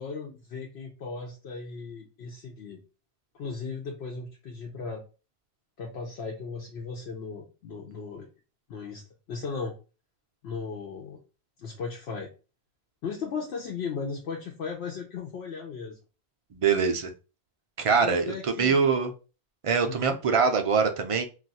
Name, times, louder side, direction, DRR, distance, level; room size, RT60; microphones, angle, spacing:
voice 1, 0.0-2.8 3.3-5.0 5.8-8.3 8.7-9.0 9.3-9.7 10.4-11.2 11.6-12.3 13.0-16.0 17.9-18.8 19.9-20.2, left 5 dB, 90° left, -1 dB, 0.9 m, -36 dB
voice 2, 16.5-17.1 17.8-19.1 19.6-21.3, right 5 dB, 55° right, 5 dB, 0.3 m, -24 dB
2.4 x 2.3 x 4.0 m, 0.32 s
omnidirectional pair, 1.1 m